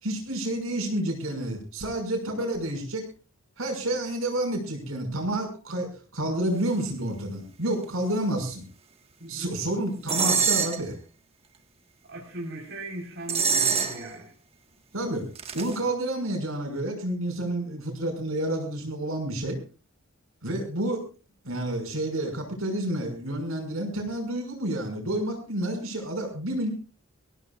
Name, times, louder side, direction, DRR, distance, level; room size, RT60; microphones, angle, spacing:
voice 1, 0.0-3.0 3.6-5.9 6.1-8.6 9.3-10.9 14.9-15.3 15.5-19.6 20.4-21.0 21.4-26.7, right 1 dB, 85° right, 3 dB, 6.1 m, -29 dB
voice 2, 9.2-9.6 12.1-14.3, right 1 dB, 55° right, -1 dB, 4.5 m, -39 dB
sound 1, 10.1-10.8 13.3-14.2 15.4-15.8, right 6 dB, 30° right, 1.7 m, -24 dB
24.5 x 16.5 x 2.5 m, 0.34 s
head